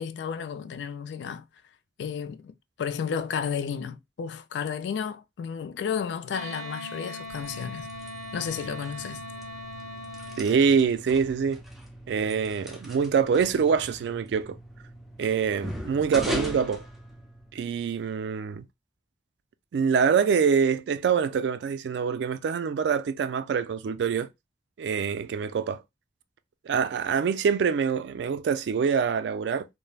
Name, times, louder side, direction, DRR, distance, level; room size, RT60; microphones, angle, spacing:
voice 1, 0.0-1.4 2.0-7.9 8.3-9.2, left 7 dB, 75° left, 0.3 m, -32 dB
Wind instrument woodwind instrument, 6.3-10.4, left 1 dB, 20° right, 0.9 m, -40 dB
sound 1, 7.2-17.7, equal, ahead, 0.5 m, -40 dB
voice 2, 10.4-11.6 12.1-14.6 15.2-16.8 17.5-18.6 19.7-24.3 24.8-25.8 26.7-29.7, right 6 dB, 70° right, 0.3 m, -25 dB
3.2 x 2.0 x 2.3 m
head